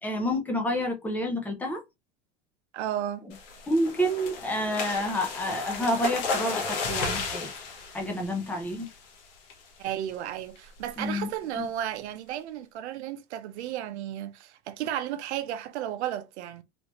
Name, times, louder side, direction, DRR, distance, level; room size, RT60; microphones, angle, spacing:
voice 1, 0.0-1.8 3.2-3.3 3.7-7.5 7.9-8.9 11.0-11.3 11.6-11.7, equal, 5° left, 0.6 m, -29 dB
voice 2, 2.7-3.3 9.8-16.6, right 11 dB, 70° right, 0.7 m, -33 dB
sound 1, 3.3-9.1 9.5-9.8 10.1-10.2 10.6-10.9, left 4 dB, 55° left, 1.4 m, -34 dB
3.4 x 2.7 x 3.0 m
supercardioid pair, 150°, 34 cm